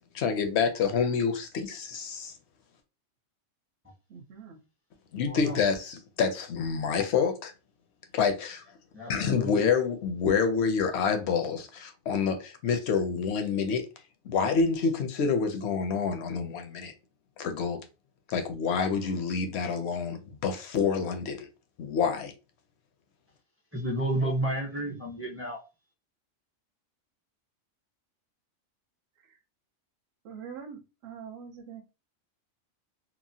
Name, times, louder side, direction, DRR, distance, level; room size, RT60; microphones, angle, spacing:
voice 1, 0.1-2.3 5.1-7.5 8.1-8.6 9.1-13.8 14.2-16.9 17.4-17.8 18.3-21.5 21.8-22.3, left 6 dB, 65° left, 0.8 m, -27 dB
voice 2, 4.1-4.6 24.8-25.4 29.3-29.4 30.2-31.8, right 7 dB, 60° right, 0.8 m, -45 dB
voice 3, 5.2-5.6 8.9-9.7 23.7-25.6, right 1 dB, 15° right, 0.6 m, -31 dB
2.9 x 2.1 x 2.6 m
omnidirectional pair, 1.4 m